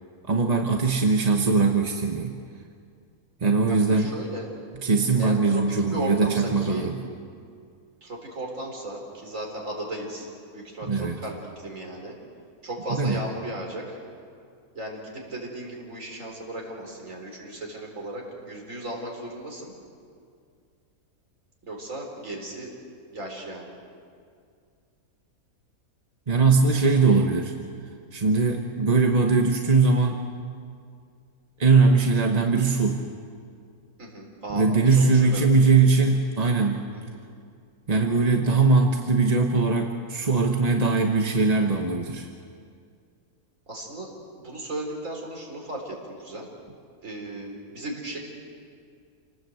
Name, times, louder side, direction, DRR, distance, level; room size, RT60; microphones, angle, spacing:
voice 1, 0.2-2.3 3.4-4.1 4.8-7.0 10.8-11.2 13.0-13.2 26.3-27.5 28.1-30.3 31.6-33.0 34.5-36.9 37.9-42.3, right 4 dB, 30° right, 3 dB, 1.1 m, -21 dB
voice 2, 3.7-4.5 5.2-5.6 5.9-6.9 8.0-12.2 12.6-14.0 14.7-19.7 21.7-22.7 23.1-23.8 34.0-35.5 36.9-37.2 43.7-44.1 44.4-46.5 47.0-48.2, right 1 dB, 60° right, 0 dB, 4.6 m, -36 dB
28.0 x 19.0 x 8.0 m, 2.3 s
omnidirectional pair, 1.5 m